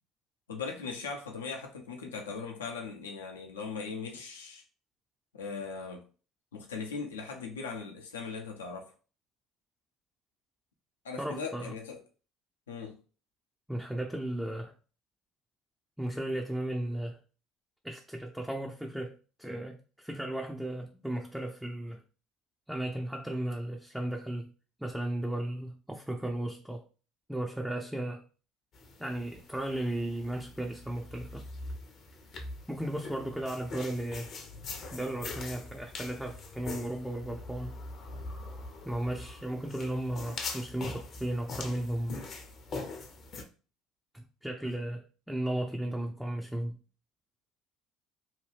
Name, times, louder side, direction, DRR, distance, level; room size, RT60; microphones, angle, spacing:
voice 1, 0.5-4.6 5.3-6.0 6.5-8.9 11.0-12.0 12.7-13.0, left 5 dB, 85° left, 0.6 m, -39 dB
voice 2, 11.2-11.7 13.7-14.7 16.0-17.2 17.8-22.0 22.7-24.5 24.8-26.8 27.3-28.2 29.0-31.5 32.7-34.3 34.9-37.8 38.8-42.2 44.1-46.8, right 1 dB, 5° right, 0.4 m, -35 dB
sound 1, 28.7-43.4, left 3 dB, 50° left, 0.7 m, -43 dB
2.8 x 2.3 x 3.2 m
hypercardioid pair, 65°, 0 cm